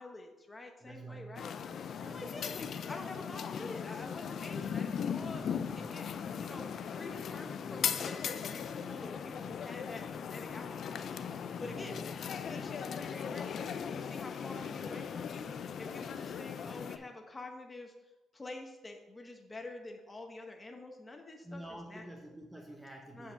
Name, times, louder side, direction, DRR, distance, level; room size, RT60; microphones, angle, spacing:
voice 1, 0.0-1.5 2.0-12.0 12.3-15.4 15.8-17.9 18.3-21.6 21.9-22.0 23.1-23.3, left 2 dB, 20° left, 3 dB, 0.9 m, -47 dB
voice 2, 0.8-1.4 1.9-2.2 11.6-12.0 21.4-23.3, right 2 dB, 10° right, 1 dB, 0.9 m, -48 dB
sound 1, 1.4-17.0, left 7 dB, 60° left, 0.4 m, -38 dB
7.7 x 4.7 x 4.5 m, 1.0 s
cardioid pair, 90°, 0 cm